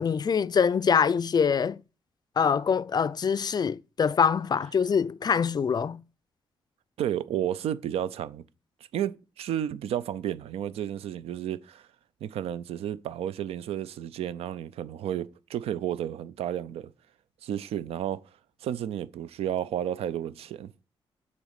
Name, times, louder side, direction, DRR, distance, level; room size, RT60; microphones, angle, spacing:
voice 1, 0.0-1.8 2.4-6.0, left 6 dB, 45° left, 0.4 m, -24 dB
voice 2, 7.0-8.4 8.9-11.9 12.2-16.9 17.4-18.2 18.6-20.7, right 10 dB, 90° right, 0.5 m, -32 dB
7.0 x 4.1 x 6.5 m
cardioid pair, 70°, 10 cm